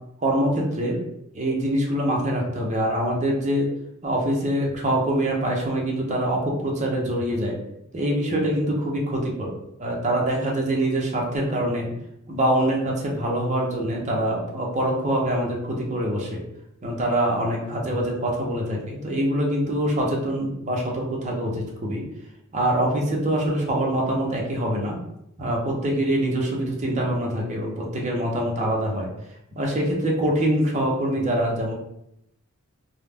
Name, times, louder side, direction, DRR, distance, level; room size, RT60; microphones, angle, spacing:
voice 1, 0.2-1.0 1.3-3.7 4.0-7.5 7.9-9.5 9.8-11.9 12.3-16.4 16.8-22.0 22.5-25.0 25.4-29.1 29.5-31.7, right 1 dB, 35° right, -2 dB, 0.6 m, -24 dB
2.2 x 2.0 x 3.3 m, 0.80 s
head